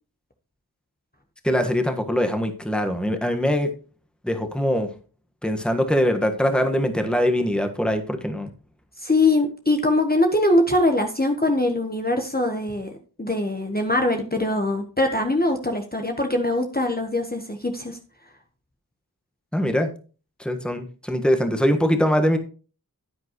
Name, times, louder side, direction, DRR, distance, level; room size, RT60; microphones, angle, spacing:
voice 1, 1.4-3.7 4.2-4.9 5.4-8.5 19.5-19.9 20.4-22.4, equal, ahead, 6 dB, 1.4 m, -22 dB
voice 2, 9.0-12.9 13.2-18.0, left 2 dB, 25° left, 4 dB, 1.2 m, -22 dB
9.9 x 9.2 x 3.1 m, 0.36 s
wide cardioid pair, 45°, 39 cm